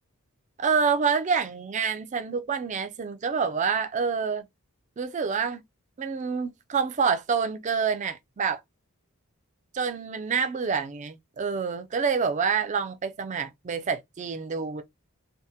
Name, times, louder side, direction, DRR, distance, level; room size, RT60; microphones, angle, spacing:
voice 1, 0.6-4.5 5.0-5.6 6.0-8.6 9.7-14.8, right 5 dB, 35° right, 0.4 m, -27 dB
3.4 x 2.1 x 2.7 m
head